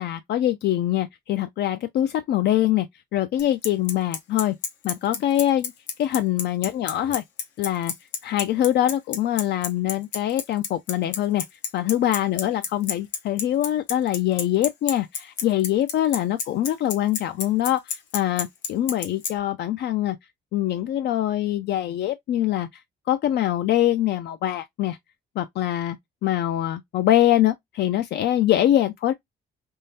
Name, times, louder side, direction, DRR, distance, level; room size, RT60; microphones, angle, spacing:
voice 1, 0.0-2.9 3.1-4.5 4.8-5.7 6.0-7.2 7.6-7.9 8.2-11.4 11.7-20.2 20.5-22.8 23.1-25.0 25.4-26.0 26.2-29.1, left 12 dB, 70° left, 0.4 m, -23 dB
Bicycle, 3.4-19.3, left 7 dB, 90° left, 0.9 m, -28 dB
3.7 x 3.3 x 2.7 m
cardioid pair, 90°, 18 cm